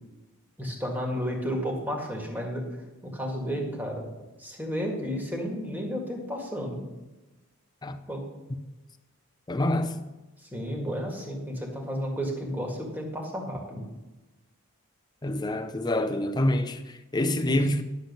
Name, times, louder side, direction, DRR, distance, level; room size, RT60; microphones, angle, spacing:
voice 1, 0.6-2.7 3.0-4.1 4.4-6.8 8.1-8.2 10.4-13.9 17.5-17.6, equal, 10° right, 1.9 m, -32 dB
voice 2, 9.5-10.0 15.2-17.8, left 1 dB, 20° left, 0.6 m, -27 dB
10.5 x 7.3 x 5.4 m
head